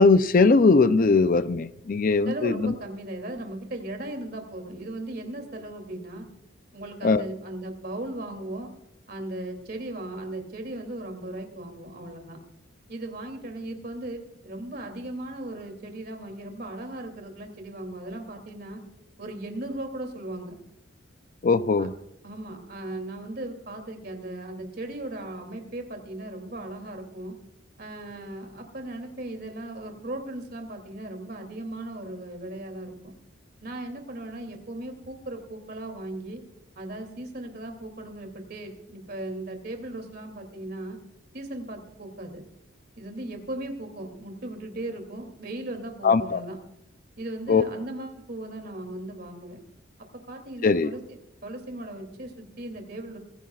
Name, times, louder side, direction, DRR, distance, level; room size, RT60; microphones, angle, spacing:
voice 1, 0.0-2.7 7.0-7.2 21.4-21.9 46.0-46.4 47.5-47.6 50.6-50.9, left 4 dB, 45° left, 13 dB, 0.4 m, -20 dB
voice 2, 2.3-6.3 6.7-8.7 9.1-12.4 12.9-18.8 19.2-20.6 21.8-21.9 22.2-27.4 27.8-33.1 33.6-36.4 36.8-41.0 41.3-42.4 43.0-46.6 47.2-49.6 50.3-53.2, right 1 dB, 50° right, 4 dB, 2.7 m, -37 dB
24.5 x 16.0 x 2.4 m, 0.81 s
head